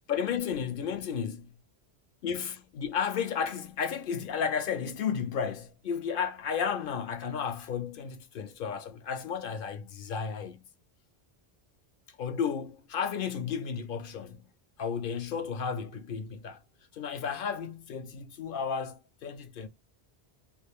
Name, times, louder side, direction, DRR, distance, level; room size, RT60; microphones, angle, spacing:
voice 1, 0.1-1.5 2.2-10.6 12.2-14.4 14.8-16.6 16.9-19.7, left 7 dB, 60° left, 0.7 m, -33 dB
2.6 x 2.4 x 3.3 m
omnidirectional pair, 1.1 m